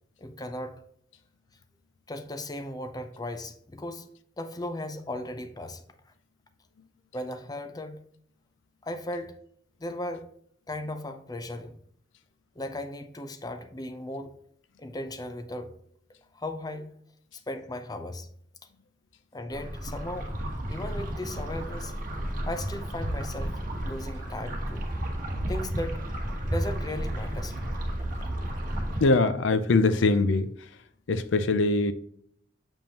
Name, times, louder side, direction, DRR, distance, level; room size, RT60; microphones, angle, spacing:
voice 1, 0.2-0.8 2.1-4.1 4.4-5.8 7.1-8.0 8.8-9.4 9.8-10.3 10.7-11.8 12.5-14.4 14.8-15.7 16.3-16.9 17.3-18.3 19.3-20.4 20.7-21.9 22.5-24.9 25.5-26.1 26.5-27.8, left 1 dB, 20° left, 0.6 m, -36 dB
sound 1, 19.5-29.0, right 1 dB, 50° right, 1.4 m, -32 dB
voice 2, 29.0-30.5 31.1-31.9, left 3 dB, 90° left, 0.5 m, -22 dB
7.3 x 5.2 x 2.9 m
head